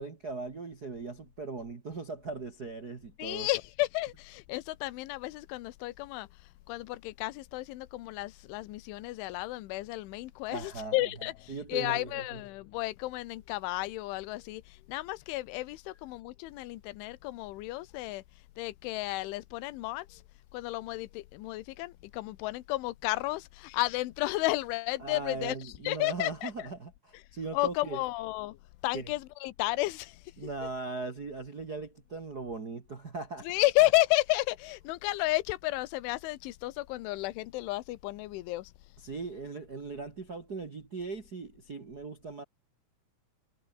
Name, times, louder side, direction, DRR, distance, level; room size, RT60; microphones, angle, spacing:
voice 1, 0.0-3.5 10.5-10.9 11.5-12.2 25.0-28.0 28.9-29.1 30.4-33.4 39.0-42.4, right 3 dB, 85° right, 0.8 m, -39 dB
voice 2, 3.2-6.3 6.7-18.2 18.6-20.2 20.5-26.5 27.5-28.6 28.8-30.5 33.5-38.7, left 19 dB, 80° left, 3.5 m, -32 dB
omnidirectional pair, 5.6 m